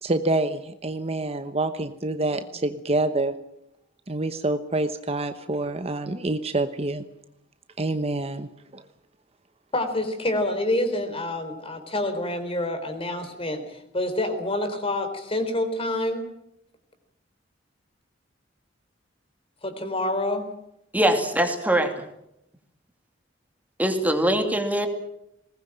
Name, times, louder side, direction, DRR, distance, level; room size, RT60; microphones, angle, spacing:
voice 1, 0.0-3.4 4.1-7.0 7.8-8.8, right 2 dB, 35° right, 9 dB, 1.0 m, -27 dB
voice 2, 9.7-16.3 19.6-20.5, left 1 dB, 30° left, 8 dB, 4.0 m, -27 dB
voice 3, 20.9-21.9 23.8-24.9, right 1 dB, 10° right, 5 dB, 2.7 m, -22 dB
21.0 x 19.0 x 8.9 m, 0.79 s
head